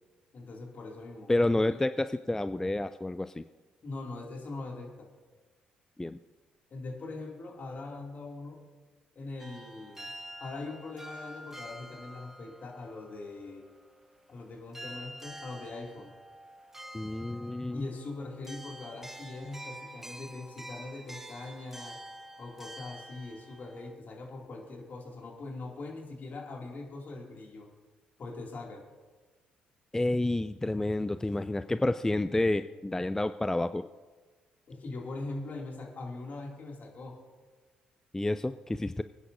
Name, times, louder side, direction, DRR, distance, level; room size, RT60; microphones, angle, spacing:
voice 1, 0.3-1.8 3.8-5.1 6.7-8.6 9.2-10.1 10.4-13.7 14.3-16.1 17.7-22.0 22.4-27.7 28.2-28.8 34.7-37.2, left 3 dB, 45° left, 0 dB, 2.5 m, -41 dB
voice 2, 1.3-3.4 6.0-6.2 16.9-17.9 29.9-33.9 38.1-39.0, left 2 dB, 10° left, 12 dB, 0.4 m, -29 dB
sound 1, 9.4-14.4 14.7-23.9, right 1 dB, 10° right, 1.0 m, -47 dB
23.5 x 9.9 x 2.6 m, 1.3 s
hypercardioid pair, 45°, 4 cm